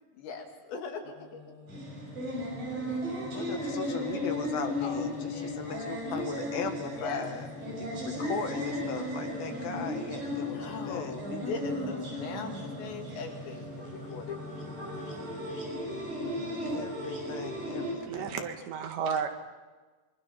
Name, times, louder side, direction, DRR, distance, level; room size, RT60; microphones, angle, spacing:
voice 1, 0.1-1.4 2.9-3.0 4.8-5.8 6.9-7.4 10.5-14.4 18.0-18.1, left 4 dB, 85° left, 2 dB, 4.6 m, -40 dB
Singing, 1.0-18.2, left 1 dB, 35° left, 2.4 m, -47 dB
sound 1, 1.7-17.9, left 1 dB, 50° right, 8.3 m, -35 dB
voice 2, 3.3-7.5 7.8-11.1 16.7-18.4, left 6 dB, 65° left, 6 dB, 2.9 m, -38 dB
voice 3, 18.1-19.3, right 7 dB, 80° right, 5 dB, 3.9 m, -32 dB
25.5 x 23.0 x 5.8 m, 1.3 s
omnidirectional pair, 5.0 m